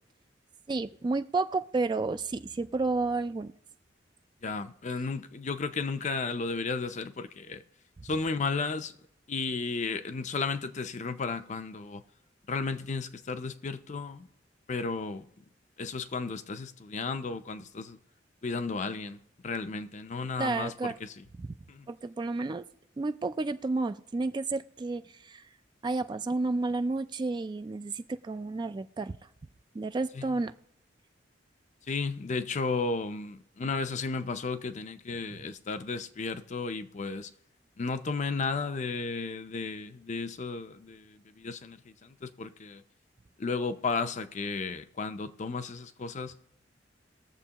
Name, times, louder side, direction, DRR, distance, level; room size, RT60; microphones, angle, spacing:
voice 1, 0.7-3.5 20.4-20.9 21.4-21.5 21.9-22.6 23.0-25.4 25.8-29.2 29.7-30.5, right 3 dB, 25° right, 0.3 m, -31 dB
voice 2, 4.4-7.6 8.0-8.9 9.3-12.0 12.5-14.3 14.7-15.3 15.8-18.0 18.4-21.2 21.7-21.9 30.1-30.4 31.9-37.3 37.8-42.8 43.4-46.4, left 4 dB, 40° left, 0.5 m, -34 dB
20.5 x 7.2 x 2.9 m
head